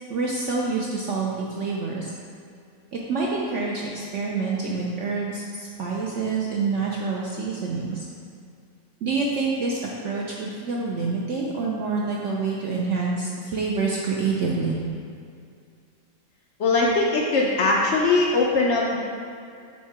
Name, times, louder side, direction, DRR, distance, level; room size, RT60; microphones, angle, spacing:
voice 1, 0.1-2.1 2.9-8.1 9.0-14.8, right 4 dB, 70° right, -3 dB, 0.7 m, -27 dB
voice 2, 16.6-19.0, left 3 dB, 75° left, -2 dB, 0.6 m, -21 dB
7.1 x 2.8 x 4.7 m, 2.4 s
omnidirectional pair, 1.8 m